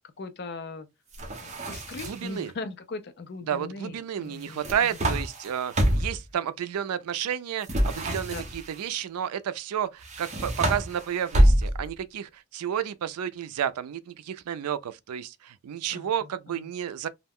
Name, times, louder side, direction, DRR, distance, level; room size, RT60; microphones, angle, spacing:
voice 1, 0.2-0.9 1.4-4.9 8.3-8.4 15.9-16.7, left 3 dB, 50° left, 0.4 m, -39 dB
sound 1, 1.1-2.4 4.4-6.3 7.6-8.8 10.0-12.0, right 1 dB, 30° right, 0.6 m, -26 dB
voice 2, 2.0-2.5 3.5-17.1, right 9 dB, 90° right, 0.3 m, -31 dB
2.3 x 2.1 x 3.4 m
head